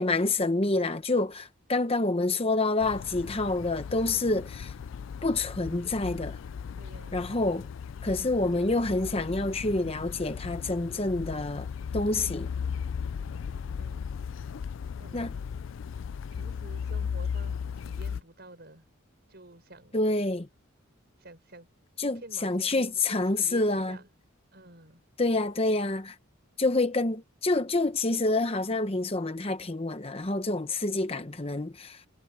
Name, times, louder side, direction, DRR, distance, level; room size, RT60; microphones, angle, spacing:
voice 1, 0.0-4.7 5.2-6.4 7.1-7.7 8.0-12.5 15.1-15.3 19.9-20.5 22.0-24.0 25.2-26.2 26.6-32.0, left 2 dB, 25° left, 0.9 m, -27 dB
sound 1, 2.8-18.2, left 6 dB, 65° left, 0.3 m, -37 dB
voice 2, 6.8-7.7 12.1-12.4 13.2-14.1 15.0-15.4 16.3-18.9 19.3-20.0 21.2-21.7 22.1-24.1 24.5-25.0 30.9-31.4, right 1 dB, 50° right, 6.1 m, -50 dB
head